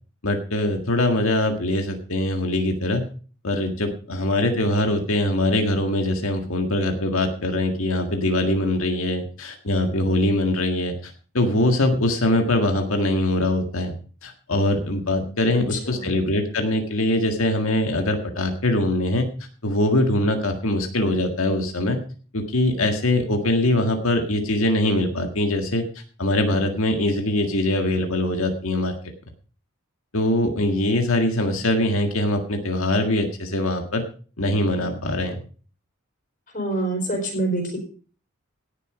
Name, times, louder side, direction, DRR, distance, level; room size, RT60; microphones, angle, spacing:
voice 1, 0.2-3.0 3.4-13.9 14.2-19.3 19.6-22.0 22.3-25.8 26.2-28.9 30.1-34.0 34.4-35.4, left 1 dB, 75° left, 4 dB, 1.8 m, -22 dB
voice 2, 15.5-16.2 36.5-37.8, right 2 dB, 40° left, 2 dB, 4.2 m, -27 dB
17.5 x 6.9 x 5.0 m, 0.40 s
head